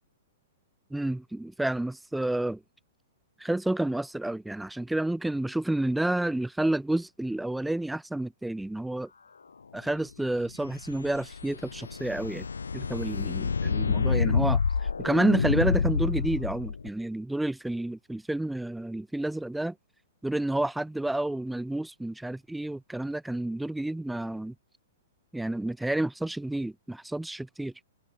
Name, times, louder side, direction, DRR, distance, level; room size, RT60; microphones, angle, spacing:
voice 1, 0.9-2.6 3.4-9.1 9.7-12.5 12.7-14.6 15.0-19.7 20.2-24.5 25.3-27.7, right 1 dB, 5° right, 0.6 m, -30 dB
sound 1, 10.5-16.9, left 5 dB, 80° left, 3.1 m, -28 dB
figure-of-eight pair, 115°, 0 cm